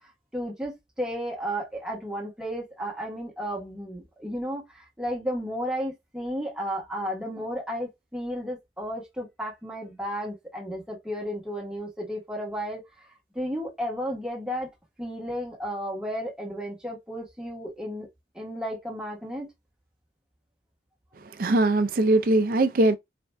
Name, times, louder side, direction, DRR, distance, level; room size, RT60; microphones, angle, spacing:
voice 1, 0.3-0.7 1.0-12.8 13.3-14.7 15.0-18.1 18.3-19.5, equal, 5° right, 1.1 m, -33 dB
voice 2, 21.4-23.0, right 2 dB, 50° right, 0.4 m, -21 dB
4.2 x 2.5 x 2.2 m
head